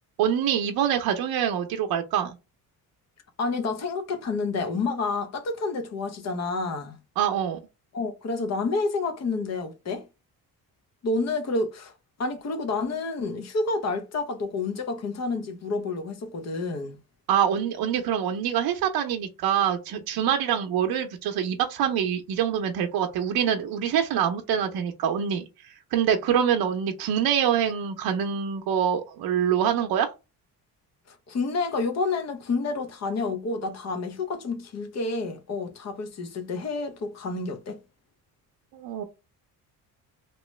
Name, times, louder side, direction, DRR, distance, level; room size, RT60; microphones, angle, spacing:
voice 1, 0.2-2.3 7.2-7.6 17.3-30.1 38.7-39.0, right 9 dB, 75° right, 0.6 m, -25 dB
voice 2, 3.4-7.0 7.9-10.0 11.0-11.9 12.2-17.0 31.1-37.8, left 3 dB, 45° left, 0.8 m, -29 dB
3.1 x 3.0 x 3.1 m
cardioid pair, 150°, 37 cm